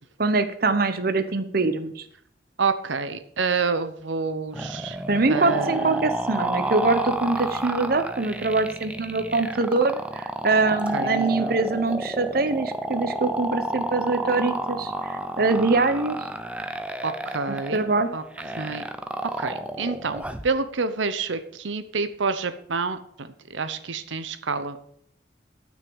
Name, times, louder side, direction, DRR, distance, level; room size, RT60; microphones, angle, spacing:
voice 1, 0.2-2.0 5.1-16.2 17.5-18.1, right 3 dB, 50° right, 9 dB, 0.9 m, -24 dB
voice 2, 2.6-5.0 5.3-6.0 10.9-11.6 17.0-18.2 18.5-18.8 19.4-24.8, right 4 dB, 85° right, 11 dB, 0.8 m, -28 dB
sound 1, 4.5-20.5, right 1 dB, 5° right, 0.6 m, -31 dB
12.0 x 6.2 x 7.1 m, 0.67 s
head